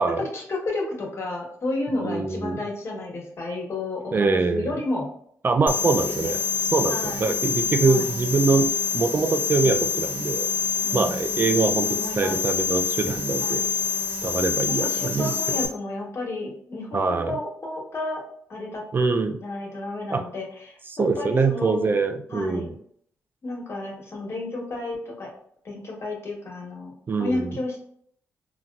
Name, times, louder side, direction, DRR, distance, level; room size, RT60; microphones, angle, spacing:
voice 1, 0.2-5.1 6.1-6.4 6.9-7.3 7.9-8.1 9.6-9.7 10.8-11.3 11.9-12.4 13.4-13.7 14.8-18.2 18.5-18.9 19.4-21.9 22.3-22.7 23.4-25.3 25.6-26.9 27.2-27.8, left 2 dB, 55° left, -1 dB, 1.1 m, -32 dB
voice 2, 2.0-2.6 4.1-4.8 5.4-10.5 10.9-11.9 12.2-13.6 14.2-15.7 16.9-17.4 18.9-19.4 20.1-20.2 20.9-22.7 27.1-27.5, right 4 dB, 40° right, 7 dB, 0.4 m, -24 dB
sound 1, 5.7-15.7, left 6 dB, 30° left, 1.3 m, -26 dB
3.9 x 2.2 x 2.3 m, 0.64 s
cardioid pair, 65°, 5 cm